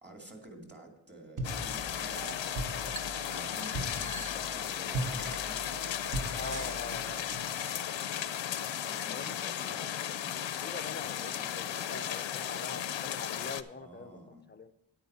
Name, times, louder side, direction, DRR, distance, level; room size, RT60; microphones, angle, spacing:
voice 1, 0.0-2.4 2.7-5.8 8.8-10.4 11.0-12.3 13.8-14.4, right 1 dB, 25° right, 2 dB, 1.9 m, -51 dB
sound 1, 1.4-13.6, left 10 dB, 75° left, 0.6 m, -35 dB
sound 2, 1.4-7.7, right 1 dB, 45° right, 1.0 m, -39 dB
sound 3, 1.9-8.3, right 2 dB, 85° right, 1.9 m, -51 dB
voice 2, 6.4-7.8 9.1-10.1 10.5-14.2 14.5-14.7, left 3 dB, 25° left, 10 dB, 0.4 m, -44 dB
9.5 x 9.5 x 4.2 m, 0.79 s
wide cardioid pair, 135°, 45 cm